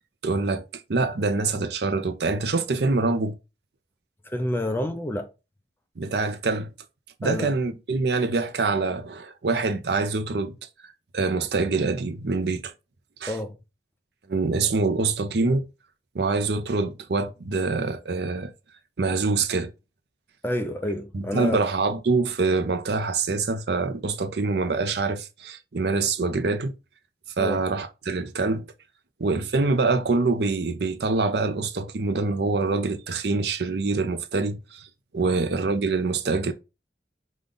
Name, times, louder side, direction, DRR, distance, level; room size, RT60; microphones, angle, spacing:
voice 1, 0.2-3.4 6.0-6.7 7.2-10.5 11.1-12.7 13.2-13.4 14.3-15.6 16.1-18.5 19.0-19.7 21.1-26.7 27.4-28.7 29.2-34.9 35.1-36.5, right 3 dB, 70° right, 0.6 m, -25 dB
voice 2, 4.3-5.3 7.2-7.5 13.3-13.5 20.4-21.6 27.4-27.6 35.2-35.3, left 1 dB, 10° left, 0.5 m, -28 dB
5.1 x 2.4 x 3.8 m
head